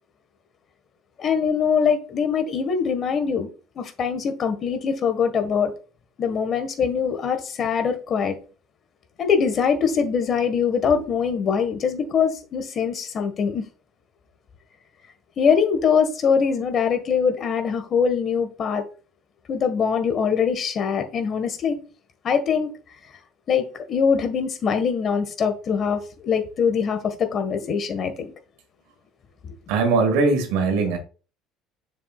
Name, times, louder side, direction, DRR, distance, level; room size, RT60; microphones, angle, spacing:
voice 1, 1.2-5.7 6.2-8.4 9.2-13.6 15.4-18.8 19.5-21.8 22.2-22.7 23.5-28.3 29.4-29.5, left 6 dB, 45° left, 1.7 m, -23 dB
voice 2, 29.7-31.0, right 4 dB, 80° right, 1.9 m, -20 dB
7.2 x 6.1 x 2.5 m
supercardioid pair, 90°, 0 cm